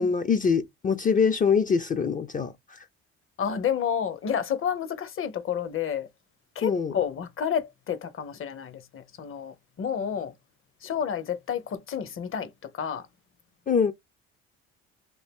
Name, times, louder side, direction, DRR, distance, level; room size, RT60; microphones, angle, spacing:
voice 1, 0.0-2.9 6.6-7.0 13.7-13.9, left 6 dB, 30° left, 0.4 m, -24 dB
voice 2, 3.4-6.1 6.5-10.3 10.8-13.1, left 8 dB, 45° left, 0.8 m, -30 dB
2.8 x 2.6 x 3.4 m
supercardioid pair, 85°, 30 cm